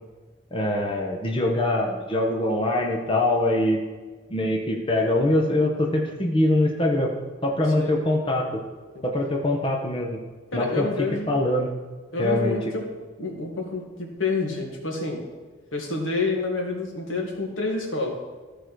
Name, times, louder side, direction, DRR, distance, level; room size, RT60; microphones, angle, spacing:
voice 1, 0.5-3.8 4.3-7.1 7.4-8.6 9.0-10.2 10.5-10.9 11.3-11.7 12.2-12.7, left 1 dB, 25° left, 1 dB, 0.9 m, -23 dB
voice 2, 10.5-11.4 12.1-12.9 13.2-15.2 15.7-18.1, left 3 dB, 90° left, 0 dB, 1.9 m, -28 dB
14.0 x 4.9 x 4.6 m, 1.4 s
head